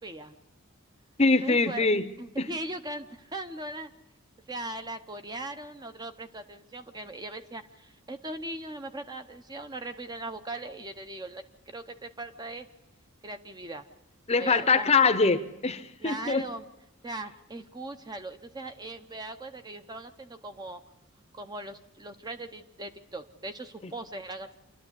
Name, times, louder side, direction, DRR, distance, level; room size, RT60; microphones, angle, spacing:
voice 1, 0.0-0.4 1.4-1.9 2.2-3.9 4.5-12.7 13.2-13.8 14.4-14.9 16.0-16.6 17.0-20.8 21.3-24.5, right 2 dB, 20° right, 0.8 m, -39 dB
voice 2, 1.2-2.1 2.4-2.5 14.3-16.4, left 4 dB, 30° left, 0.8 m, -23 dB
27.0 x 12.5 x 8.2 m
head